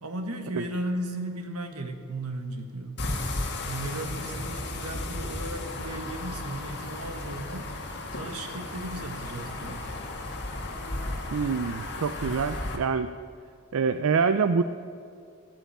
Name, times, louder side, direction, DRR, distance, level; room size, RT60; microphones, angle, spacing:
voice 1, 0.0-3.0 3.6-7.7 8.1-9.9, right 1 dB, 90° right, 5 dB, 1.6 m, -35 dB
sound 1, 3.0-12.8, left 2 dB, 50° left, 1.9 m, -34 dB
voice 2, 11.3-13.1 13.7-14.6, right 5 dB, 65° right, 10 dB, 0.4 m, -25 dB
13.5 x 9.1 x 8.5 m, 2.4 s
head